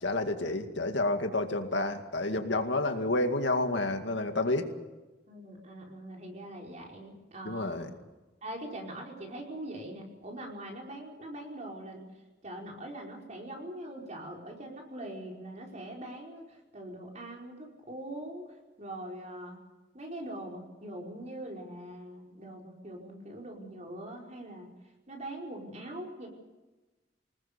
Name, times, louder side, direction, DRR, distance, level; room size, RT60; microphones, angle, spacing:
voice 1, 0.0-4.7 7.4-7.9, left 2 dB, 70° left, 5 dB, 2.2 m, -29 dB
voice 2, 5.3-7.9 8.4-12.1 12.4-19.6 19.9-24.7 25.1-26.3, right 1 dB, 40° right, 0 dB, 5.1 m, -42 dB
26.0 x 20.0 x 6.9 m, 1.1 s
head